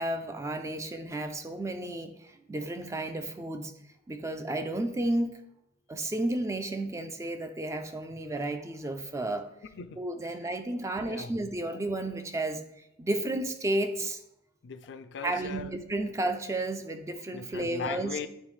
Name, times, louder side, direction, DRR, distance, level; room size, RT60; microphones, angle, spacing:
voice 1, 0.0-3.7 4.1-5.4 5.9-9.5 10.0-12.6 13.0-14.2 15.2-18.1, right 1 dB, 15° right, 0.3 m, -32 dB
voice 2, 9.7-10.4 11.0-11.4 14.6-15.8 17.3-18.3, left 6 dB, 65° left, 0.4 m, -39 dB
9.4 x 3.4 x 3.2 m
head